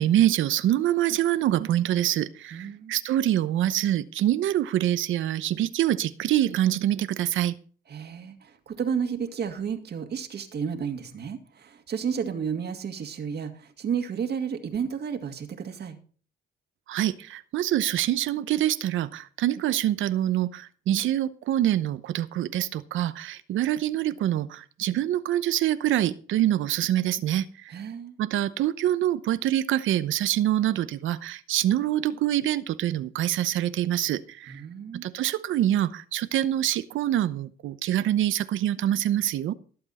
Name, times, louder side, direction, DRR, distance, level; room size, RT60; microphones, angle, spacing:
voice 1, 0.0-7.5 16.9-27.5 28.2-34.6 35.0-39.5, right 12 dB, 80° right, 0.8 m, -25 dB
voice 2, 2.5-3.0 7.9-16.0 27.7-28.2 34.5-35.1, right 7 dB, 55° right, 2.0 m, -32 dB
17.0 x 7.9 x 4.2 m
cardioid pair, 90°, 20 cm